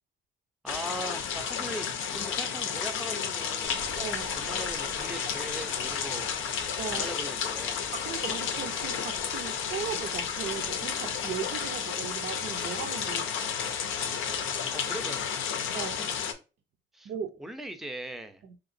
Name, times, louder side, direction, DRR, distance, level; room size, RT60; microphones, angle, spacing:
voice 1, 0.6-3.9 4.3-6.3 6.9-7.9 14.7-15.4 16.9-17.1 17.4-18.4, right 1 dB, ahead, 0.4 m, -40 dB
sound 1, 0.7-16.3, left 7 dB, 85° left, 0.5 m, -32 dB
sound 2, 3.6-13.0, right 4 dB, 90° right, 1.0 m, -51 dB
voice 2, 4.0-4.4 6.8-7.1 7.9-13.3 15.7-16.1 17.0-17.4 18.5-18.6, right 8 dB, 60° right, 0.5 m, -37 dB
3.2 x 2.9 x 2.5 m
cardioid pair, 90°, 20 cm